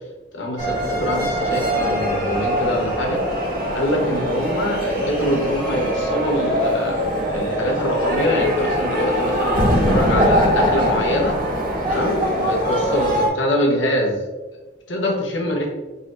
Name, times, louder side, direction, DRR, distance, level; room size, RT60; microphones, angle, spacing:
voice 1, 0.3-3.2 3.7-11.4 11.9-14.2 14.5-14.6 14.9-15.7, left 1 dB, 90° left, 0 dB, 1.1 m, -24 dB
sound 1, 0.6-13.3, equal, 50° right, 1.5 m, -22 dB
4.7 x 4.1 x 2.6 m, 1.1 s
head